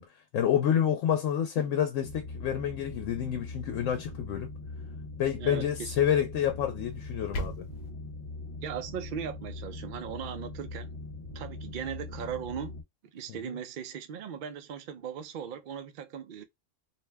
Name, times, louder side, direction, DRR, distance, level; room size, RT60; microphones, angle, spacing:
voice 1, 0.0-4.5 5.2-7.6 13.5-13.6, left 9 dB, 85° left, 0.9 m, -28 dB
sound 1, 2.0-12.8, left 2 dB, 35° left, 0.7 m, -41 dB
voice 2, 5.4-6.1 8.6-10.9 11.3-12.7 13.1-16.4, right 8 dB, 60° right, 0.5 m, -38 dB
sound 2, 6.9-7.9, equal, 60° left, 0.9 m, -37 dB
2.6 x 2.1 x 3.3 m
omnidirectional pair, 1.3 m